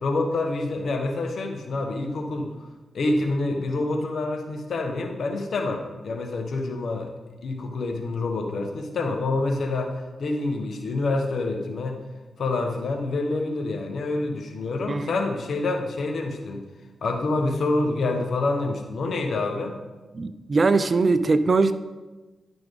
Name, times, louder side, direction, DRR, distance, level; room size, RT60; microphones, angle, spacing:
voice 1, 0.0-2.5 2.9-7.1 7.4-9.9 10.2-12.0 12.4-16.6 17.0-19.8, left 2 dB, 70° left, 4 dB, 1.2 m, -27 dB
voice 2, 20.1-21.7, right 3 dB, 45° right, 12 dB, 0.6 m, -21 dB
11.0 x 6.0 x 3.6 m, 1.2 s
cardioid pair, 55°, 0 cm